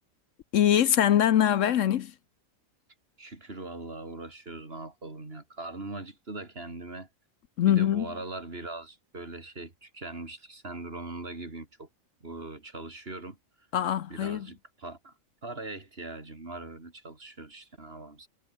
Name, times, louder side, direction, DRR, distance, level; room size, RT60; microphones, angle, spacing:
voice 1, 0.5-2.1 7.6-8.1 13.7-14.5, left 10 dB, 70° left, 1.1 m, -23 dB
voice 2, 3.2-7.1 7.7-11.9 12.2-13.4 14.1-15.1 15.4-18.3, right 2 dB, 45° right, 3.6 m, -41 dB
omnidirectional pair, 1.4 m